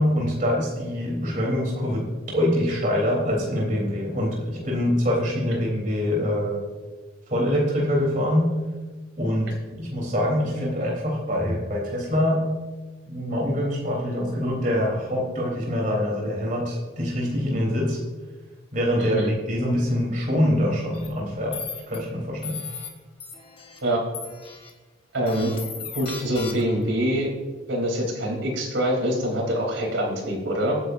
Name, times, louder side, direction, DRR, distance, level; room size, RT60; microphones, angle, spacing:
voice 1, 0.0-6.6 7.3-8.5 9.2-12.4 13.1-18.0 18.7-21.5 21.9-22.6, equal, 40° right, -3 dB, 3.7 m, -24 dB
voice 2, 19.0-19.3 23.8-24.0 25.1-25.5 25.9-27.3 27.7-30.8, equal, 80° right, 0 dB, 3.6 m, -25 dB
sound 1, 20.9-21.1 21.5-22.0 22.4-22.9 23.2-23.8 24.1-24.7 25.3-26.8, left 6 dB, 25° left, 1.4 m, -37 dB
22.0 x 9.4 x 2.7 m, 1.3 s
head